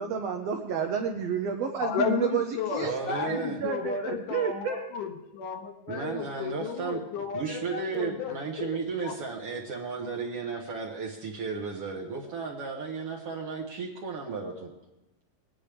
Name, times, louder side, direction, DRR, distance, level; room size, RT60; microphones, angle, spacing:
voice 1, 0.0-2.9 3.2-4.8, right 7 dB, 80° right, 3 dB, 1.4 m, -30 dB
voice 2, 1.8-8.7 9.0-9.1, left 6 dB, 75° left, 4 dB, 2.4 m, -33 dB
voice 3, 2.8-3.6 5.9-7.0 7.3-14.7, right 5 dB, 65° right, -1 dB, 1.5 m, -34 dB
21.0 x 10.0 x 3.4 m, 0.99 s
omnidirectional pair, 3.8 m